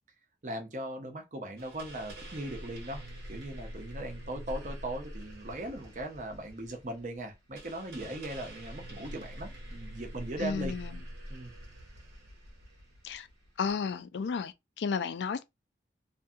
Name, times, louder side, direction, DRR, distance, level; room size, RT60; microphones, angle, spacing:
voice 1, 0.4-3.0 3.3-10.7 11.3-11.5, right 1 dB, 45° right, 0.7 m, -39 dB
sound 1, 1.6-13.7, right 1 dB, 70° right, 1.0 m, -45 dB
voice 2, 10.4-11.0 13.0-13.3 13.6-15.4, left 5 dB, 85° left, 0.4 m, -33 dB
2.6 x 2.6 x 2.4 m
head